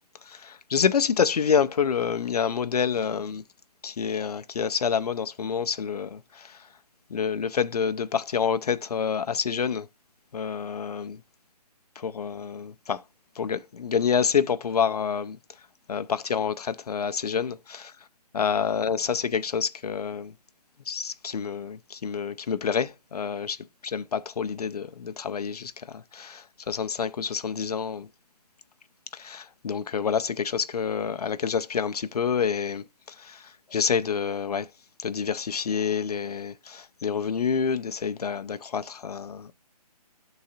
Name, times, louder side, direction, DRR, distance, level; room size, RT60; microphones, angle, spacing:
voice 1, 0.3-3.4 3.8-6.6 7.1-9.9 10.3-11.2 12.0-13.0 13.4-15.4 15.9-17.9 18.3-20.3 20.9-23.6 23.8-28.1 29.1-34.7 35.0-39.5, left 6 dB, 70° left, 0.5 m, -28 dB
11.0 x 3.8 x 2.8 m
hypercardioid pair, 170°, 21 cm